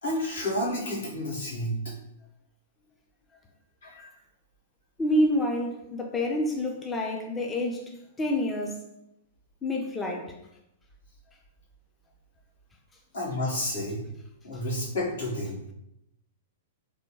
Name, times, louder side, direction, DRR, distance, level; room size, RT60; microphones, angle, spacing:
voice 1, 0.0-1.8 3.8-4.1 13.1-14.0 14.4-15.6, left 1 dB, 85° left, 1.4 m, -30 dB
voice 2, 5.0-8.8 9.6-10.4 14.5-14.6, left 1 dB, 15° left, 0.4 m, -28 dB
3.3 x 2.2 x 3.0 m
hypercardioid pair, 125°, 0 cm